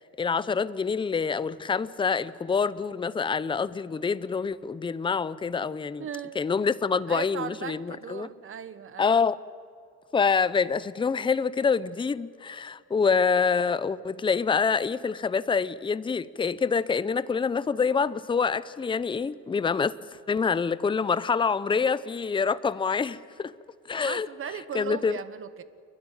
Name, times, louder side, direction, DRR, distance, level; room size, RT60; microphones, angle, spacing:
voice 1, 0.2-6.1 6.4-8.3 9.0-9.4 10.1-19.9 20.3-23.5 23.9-24.3 24.7-25.2, left 5 dB, 15° left, 0.6 m, -26 dB
voice 2, 6.0-6.4 7.1-9.2 24.0-25.6, right 8 dB, 40° right, 1.2 m, -37 dB
29.5 x 11.5 x 10.0 m
cardioid pair, 110°, 31 cm